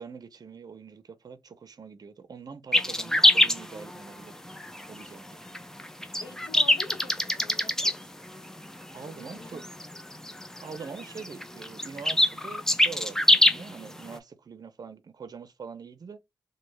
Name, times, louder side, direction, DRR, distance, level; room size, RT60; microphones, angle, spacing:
voice 1, 0.0-4.4 4.9-5.6 8.9-9.6 10.3-16.2, right 5 dB, 50° right, 0.6 m, -44 dB
sound 1, 2.7-14.2, left 1 dB, 5° left, 0.4 m, -25 dB
voice 2, 6.2-8.1 9.1-9.6 9.9-10.0, left 4 dB, 65° left, 0.9 m, -46 dB
3.1 x 2.1 x 3.2 m
wide cardioid pair, 105°, 8 cm